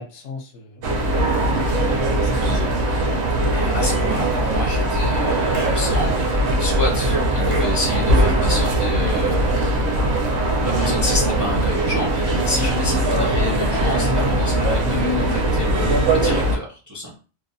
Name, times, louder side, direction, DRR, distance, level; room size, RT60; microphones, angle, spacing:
voice 1, 0.0-3.0, left 3 dB, 70° left, 2 dB, 0.9 m, -36 dB
sound 1, 0.8-16.6, right 1 dB, 65° right, 0.8 m, -20 dB
voice 2, 3.5-9.9 10.6-17.2, left 1 dB, 20° right, -3 dB, 0.5 m, -29 dB
Clapping / Chirp tweet, 5.5-5.9 7.5-7.8, right 2 dB, 85° right, 1.1 m, -36 dB
sound 2, 7.4-16.1, left 1 dB, 40° left, 0.5 m, -32 dB
2.6 x 2.1 x 2.5 m, 0.35 s
omnidirectional pair, 1.3 m